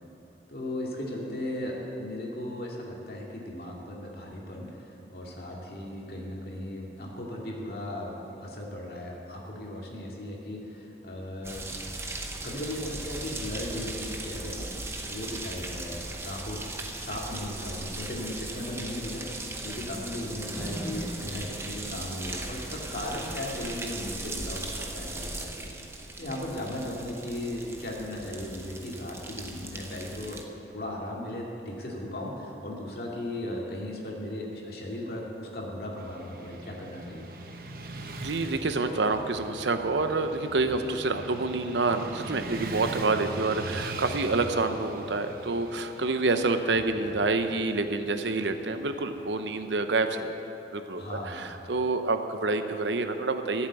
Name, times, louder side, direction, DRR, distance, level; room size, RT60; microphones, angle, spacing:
voice 1, 0.5-11.7 12.3-14.7 15.1-16.6 17.0-19.4 19.6-25.7 26.2-30.4 30.7-37.3 51.0-51.5, left 1 dB, 55° left, -2 dB, 2.3 m, -37 dB
sound 1, 11.4-30.4, right 2 dB, 15° right, 0.8 m, -38 dB
Motorcycle / Traffic noise roadway noise, 36.0-50.1, right 2 dB, 55° right, 0.9 m, -41 dB
voice 2, 38.2-50.4 50.7-53.7, right 3 dB, 90° right, 8 dB, 0.8 m, -28 dB
13.5 x 7.4 x 8.8 m, 2.9 s
head